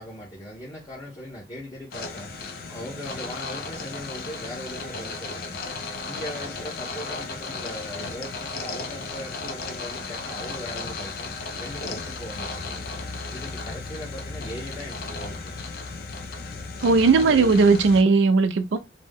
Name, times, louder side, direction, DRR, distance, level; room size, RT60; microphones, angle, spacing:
voice 1, 0.0-2.3 2.7-5.7 6.0-12.8 13.3-15.6 17.2-17.5, left 1 dB, 25° left, 0.8 m, -39 dB
sound 1, 1.9-18.0, left 3 dB, 55° left, 0.4 m, -35 dB
voice 2, 16.8-18.8, right 4 dB, 90° right, 0.4 m, -18 dB
2.6 x 2.1 x 3.4 m
head